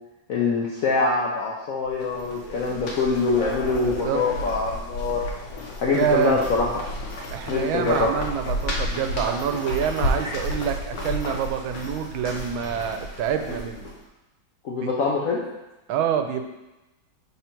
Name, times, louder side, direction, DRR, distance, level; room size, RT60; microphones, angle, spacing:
voice 1, 0.3-5.2 5.8-6.7 7.5-8.1 10.2-10.3 14.6-15.4, left 4 dB, 70° left, -3 dB, 0.8 m, -24 dB
sound 1, 1.9-14.0, left 1 dB, 85° left, 1.6 m, -32 dB
voice 2, 3.8-4.2 5.9-6.4 7.3-13.9 14.8-15.2 15.9-16.4, right 8 dB, 85° right, 6 dB, 1.4 m, -27 dB
5.6 x 3.9 x 4.4 m, 1.0 s
omnidirectional pair, 2.2 m